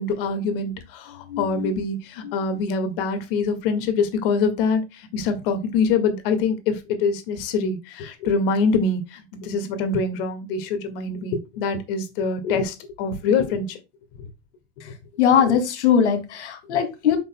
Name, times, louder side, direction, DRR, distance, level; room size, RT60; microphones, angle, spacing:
voice 1, 0.0-13.8 15.5-15.6, left 4 dB, 55° left, 1.9 m, -24 dB
voice 2, 1.3-1.7 2.2-2.3 15.2-17.2, left 8 dB, 90° left, 2.4 m, -20 dB
8.6 x 5.5 x 2.2 m
supercardioid pair, 155°, 34 cm